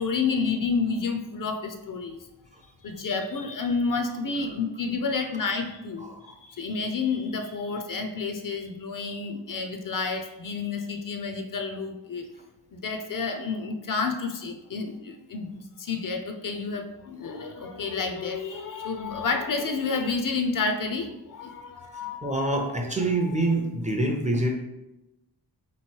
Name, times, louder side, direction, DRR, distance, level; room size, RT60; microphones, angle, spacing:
voice 1, 0.0-2.2 2.8-12.2 12.7-22.4 23.0-23.5, left 4 dB, 50° left, 6 dB, 0.5 m, -30 dB
voice 2, 6.0-6.4 22.2-24.5, right 2 dB, 20° right, 2 dB, 0.5 m, -26 dB
3.7 x 3.1 x 4.4 m, 0.96 s
wide cardioid pair, 120°, 41 cm